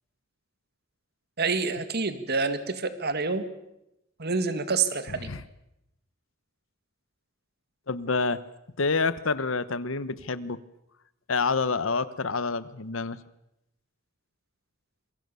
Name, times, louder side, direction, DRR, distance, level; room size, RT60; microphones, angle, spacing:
voice 1, 1.4-3.4 4.2-5.3, right 4 dB, 55° right, 11 dB, 2.1 m, -27 dB
voice 2, 7.9-8.4 8.8-10.6 11.3-13.2, left 4 dB, 70° left, 16 dB, 1.1 m, -27 dB
26.5 x 22.5 x 7.0 m, 0.85 s
head